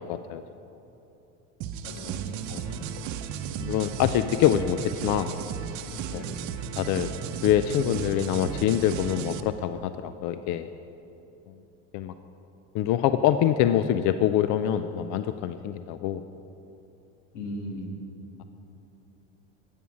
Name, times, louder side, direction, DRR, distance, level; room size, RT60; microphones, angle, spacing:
voice 1, 0.1-0.4 2.5-2.6 3.6-5.3 6.1-6.2 6.8-7.1 7.4-10.7 11.9-12.1 12.7-16.2, left 11 dB, 55° left, 11 dB, 0.5 m, -25 dB
sound 1, 1.6-9.4, right 8 dB, 55° right, 0.7 m, -35 dB
voice 2, 1.8-2.9 6.1-6.4 17.3-17.8, left 1 dB, 85° left, 0 dB, 2.6 m, -38 dB
11.0 x 8.7 x 6.2 m, 3.0 s
supercardioid pair, 110°, 35 cm